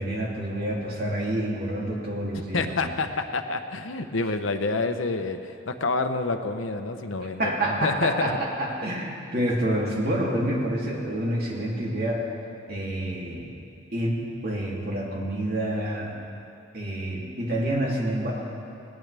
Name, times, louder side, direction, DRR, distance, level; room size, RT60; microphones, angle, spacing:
voice 1, 0.0-2.9 7.4-12.2 12.7-13.5 13.9-16.1 16.7-18.3, right 1 dB, 50° right, -3 dB, 2.8 m, -28 dB
voice 2, 2.5-8.1, left 3 dB, 75° left, 8 dB, 0.9 m, -28 dB
19.5 x 19.0 x 3.4 m, 2.7 s
head